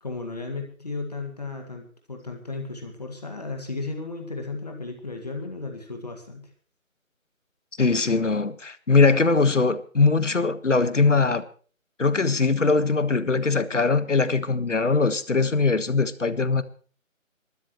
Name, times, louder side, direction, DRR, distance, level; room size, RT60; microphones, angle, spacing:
voice 1, 0.0-6.5, left 3 dB, 30° left, 3 dB, 1.9 m, -34 dB
voice 2, 7.8-11.4 12.0-16.6, left 4 dB, 60° left, 13 dB, 1.5 m, -21 dB
26.0 x 12.5 x 3.1 m, 0.41 s
figure-of-eight pair, 170°, 41 cm